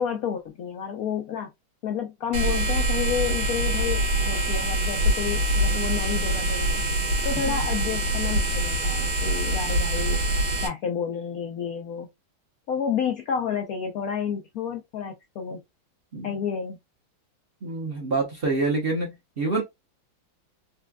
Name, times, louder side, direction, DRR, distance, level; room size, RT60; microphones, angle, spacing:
voice 1, 0.0-1.5 1.8-6.8 7.2-10.2 10.6-12.1 12.7-15.6 16.2-16.8, left 7 dB, 85° left, 0.7 m, -30 dB
sound 1, 2.3-10.7, right 1 dB, 65° right, 2.1 m, -24 dB
voice 2, 17.6-19.6, right 3 dB, 50° right, 0.7 m, -27 dB
4.2 x 2.3 x 2.2 m
omnidirectional pair, 2.2 m